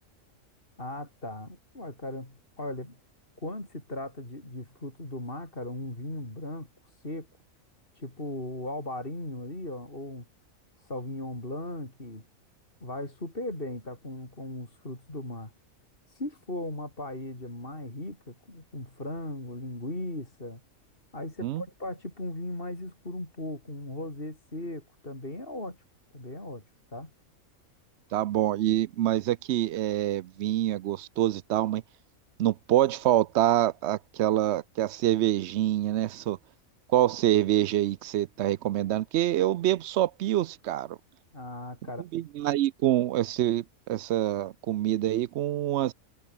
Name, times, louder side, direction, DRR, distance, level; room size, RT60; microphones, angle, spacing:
voice 1, 0.8-3.0 3.4-6.7 7.0-7.3 8.0-10.2 10.8-12.2 12.8-15.5 16.1-20.6 21.1-25.8 26.1-26.6 26.9-27.1 41.3-42.1, left 1 dB, 40° left, 5.8 m, -37 dB
voice 2, 28.1-31.8 32.4-36.4 36.9-41.0 42.1-45.9, right 13 dB, 65° right, 0.7 m, -26 dB
omnidirectional pair, 1.4 m